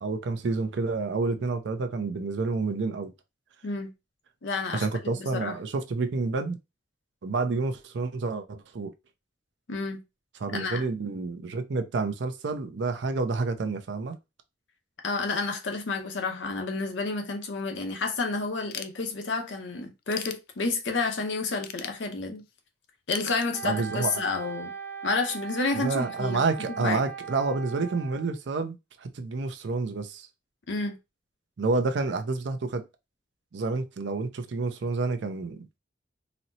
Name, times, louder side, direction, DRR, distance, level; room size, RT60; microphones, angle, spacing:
voice 1, 0.0-3.1 4.7-6.6 7.2-8.9 10.4-14.2 23.6-24.2 25.8-30.3 31.6-32.9 33.5-35.8, right 3 dB, 75° right, 0.5 m, -29 dB
voice 2, 4.4-4.9 5.1-5.6 9.7-10.0 10.5-10.8 15.0-22.4 23.1-24.7 25.0-26.4 26.8-27.0 30.7-31.0, left 3 dB, 80° left, 0.7 m, -30 dB
Ratchet pawl / Tools, 18.7-19.5 19.9-21.0 21.6-22.5 23.1-24.1, left 10 dB, 55° left, 0.3 m, -39 dB
Wind instrument woodwind instrument, 23.5-28.3, right 6 dB, 10° left, 0.7 m, -39 dB
4.1 x 2.0 x 2.7 m
head